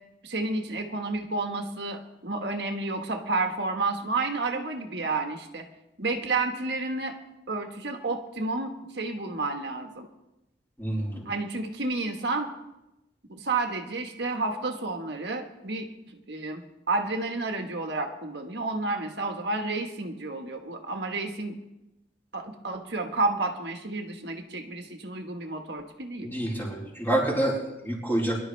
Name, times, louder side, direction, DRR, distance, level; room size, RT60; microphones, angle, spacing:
voice 1, 0.2-5.7 6.0-7.1 7.5-10.1 11.2-12.5 13.3-15.9 16.1-16.6 16.9-21.6 22.3-26.3, right 3 dB, 70° right, 4 dB, 1.5 m, -30 dB
voice 2, 10.8-11.3 26.2-27.6 27.8-28.4, right 1 dB, 10° left, -4 dB, 4.5 m, -27 dB
24.0 x 12.0 x 3.4 m, 0.93 s
head